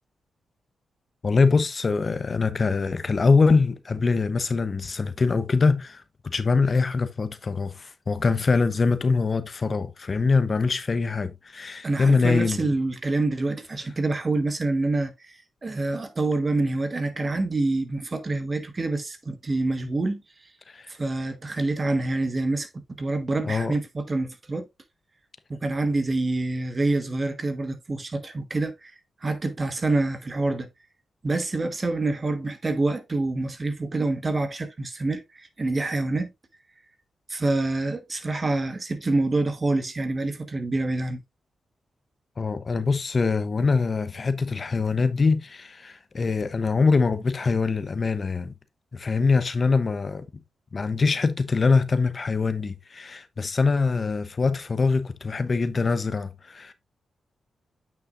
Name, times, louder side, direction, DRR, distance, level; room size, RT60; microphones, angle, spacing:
voice 1, 1.2-12.7 20.7-20.9 23.4-23.7 42.4-48.5 48.9-50.2 50.7-56.7, left 4 dB, 45° left, 0.8 m, -23 dB
voice 2, 11.8-15.3 15.6-20.2 20.9-22.7 23.0-24.6 25.5-28.9 29.2-30.7 31.2-36.3 37.3-41.2, right 2 dB, 40° right, 1.4 m, -26 dB
8.4 x 6.6 x 2.5 m
supercardioid pair, 55°, 0 cm